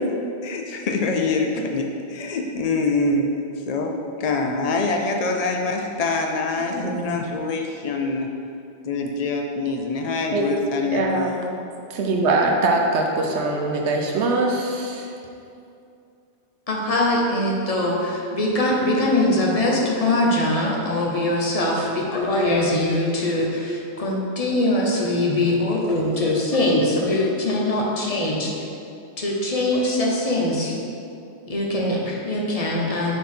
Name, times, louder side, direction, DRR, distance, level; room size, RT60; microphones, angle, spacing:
voice 1, 0.4-3.4 3.7-8.3 8.8-11.4, left 3 dB, 85° left, 2 dB, 0.3 m, -25 dB
voice 2, 6.6-7.2 16.7-28.5 29.2-30.8 31.5-33.2, left 1 dB, 35° left, -2 dB, 0.8 m, -22 dB
voice 3, 10.9-11.3 12.0-15.1, right 2 dB, 70° right, 1 dB, 1.0 m, -22 dB
6.0 x 3.9 x 4.3 m, 2.6 s
omnidirectional pair, 1.2 m